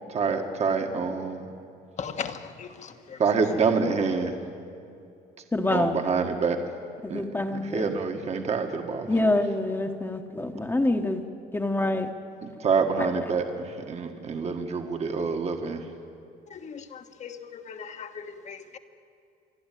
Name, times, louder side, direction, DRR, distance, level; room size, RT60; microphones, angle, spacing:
voice 1, 0.1-1.4 3.2-4.4 5.7-6.6 7.1-7.2 7.5-9.1 12.4-15.8, right 5 dB, 40° right, 4 dB, 1.6 m, -27 dB
voice 2, 2.0-3.2 16.5-18.8, left 6 dB, 45° left, 7 dB, 1.4 m, -38 dB
voice 3, 5.5-6.0 7.0-7.9 9.1-11.2 11.5-12.1, left 2 dB, 15° left, 4 dB, 1.2 m, -26 dB
26.5 x 11.5 x 9.3 m, 2.5 s
cardioid pair, 110°, 17 cm